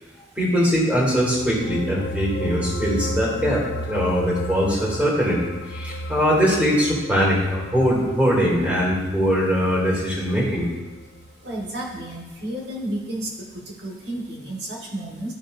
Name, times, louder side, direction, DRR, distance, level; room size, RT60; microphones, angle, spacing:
voice 1, 0.4-3.6 3.9-10.7, equal, 10° right, -5 dB, 2.3 m, -21 dB
sound 1, 1.1-11.6 11.9-12.1, equal, 80° left, 0.4 m, -34 dB
voice 2, 11.4-13.3 13.8-15.3, right 1 dB, 75° right, -2 dB, 1.4 m, -31 dB
13.0 x 5.0 x 2.5 m, 1.2 s
head